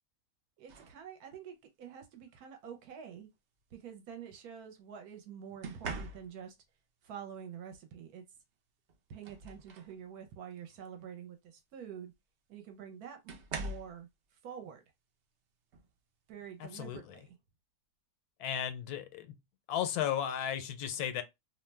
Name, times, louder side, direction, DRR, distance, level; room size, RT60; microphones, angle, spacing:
voice 1, 0.6-3.3 3.7-6.6 7.0-8.2 9.1-12.1 12.5-14.1 14.4-14.8 16.3-17.4, right 8 dB, 80° right, 1.1 m, -47 dB
sound 1, 0.7-1.0 2.3-2.6 5.6-6.6 8.4-8.5 8.9-10.0 10.5-10.8 12.1-12.2 13.3-14.0 15.7-15.9 16.4-16.7, right 3 dB, 65° right, 0.7 m, -43 dB
voice 2, 16.6-17.0 18.4-19.4 19.7-21.2, left 10 dB, 90° left, 1.1 m, -34 dB
2.7 x 2.1 x 3.2 m
omnidirectional pair, 1.6 m